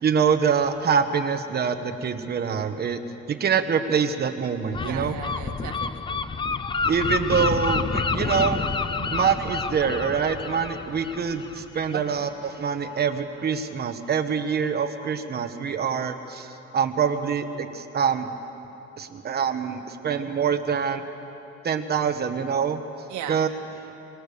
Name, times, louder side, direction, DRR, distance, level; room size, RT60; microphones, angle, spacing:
voice 1, 0.0-3.0 3.4-5.1 6.8-8.6 9.1-18.3 19.0-21.0 21.6-22.8 23.3-23.5, right 6 dB, 35° right, 7 dB, 1.2 m, -25 dB
Gull seagull, 4.7-12.2, left 4 dB, 15° left, 0.4 m, -29 dB
voice 2, 4.8-6.3 9.0-9.1 11.9-12.3 23.1-23.5, right 9 dB, 80° right, 4 dB, 1.9 m, -37 dB
24.5 x 19.5 x 6.9 m, 2.9 s
cardioid pair, 175°, 29 cm